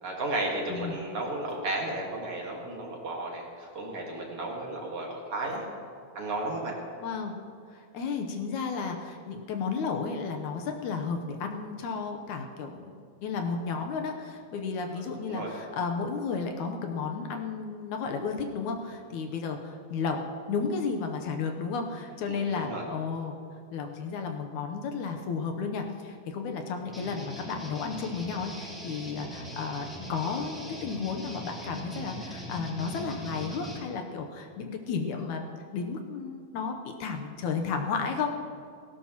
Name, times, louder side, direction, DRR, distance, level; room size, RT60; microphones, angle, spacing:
voice 1, 0.0-5.6 6.1-6.8 14.9-15.6 22.3-22.8, right 2 dB, 50° right, -1 dB, 2.4 m, -34 dB
voice 2, 7.0-7.3 7.7-13.0 13.2-20.2 20.5-23.3 23.7-35.5 35.7-38.3, left 5 dB, 75° left, 4 dB, 2.2 m, -33 dB
sound 1, 26.9-33.8, equal, ahead, 3.3 m, -41 dB
18.0 x 17.0 x 3.0 m, 2.2 s
omnidirectional pair, 3.7 m